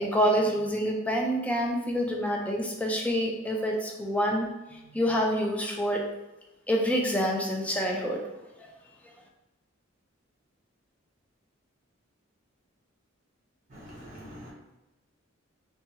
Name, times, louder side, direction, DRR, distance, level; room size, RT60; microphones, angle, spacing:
voice 1, 0.0-6.0 6.7-8.2 8.6-8.7, equal, 5° left, 0 dB, 0.3 m, -27 dB
voice 2, 13.7-14.5, equal, 40° right, -5 dB, 0.8 m, -44 dB
3.1 x 2.2 x 2.7 m, 0.99 s
head